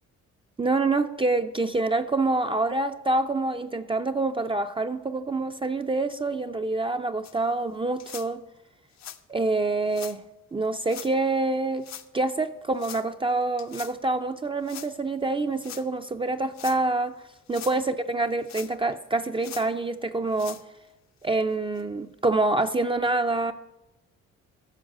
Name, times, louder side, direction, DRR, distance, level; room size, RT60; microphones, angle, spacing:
voice 1, 0.6-8.4 9.3-10.3 10.5-17.2 17.5-20.6 21.2-23.5, right 2 dB, 20° right, 0.4 m, -26 dB
sound 1, 7.2-7.3 8.0-8.3 8.9-9.2 9.9-10.2 10.8-11.1 11.8-12.1 12.8-13.0 13.6-13.9 14.6-14.9 15.6-15.8 16.4-16.8 17.3-17.8 18.4-18.9 19.4-19.7 20.3-20.6 21.2-21.3 21.8-21.9 22.6-22.7, left 10 dB, 65° left, 0.7 m, -41 dB
14.0 x 5.9 x 6.4 m
cardioid pair, 90°, 30 cm